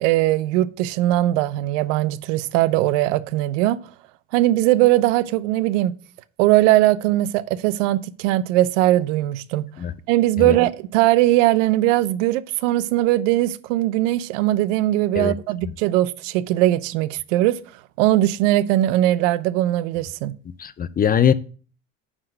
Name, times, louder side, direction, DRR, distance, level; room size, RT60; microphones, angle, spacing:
voice 1, 0.0-3.8 4.3-5.9 6.4-9.7 10.1-17.6 18.0-20.3, right 15 dB, 70° right, 0.7 m, -20 dB
voice 2, 20.6-21.3, left 8 dB, 25° left, 0.5 m, -20 dB
9.7 x 3.8 x 6.4 m
hypercardioid pair, 75°, 39 cm